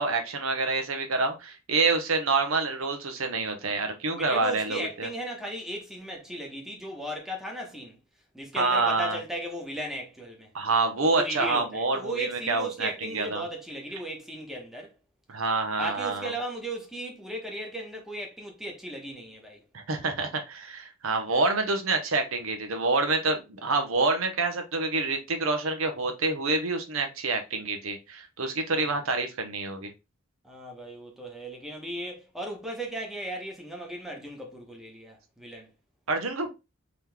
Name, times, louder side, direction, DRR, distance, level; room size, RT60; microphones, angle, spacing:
voice 1, 0.0-5.1 8.5-9.2 10.5-13.4 15.3-16.3 19.7-29.9 36.1-36.5, right 3 dB, 80° right, 0.8 m, -27 dB
voice 2, 4.1-8.0 8.3-10.5 11.2-14.9 15.8-19.6 28.7-28.8 30.4-35.7, right 1 dB, ahead, 1.0 m, -36 dB
3.8 x 3.0 x 3.4 m
head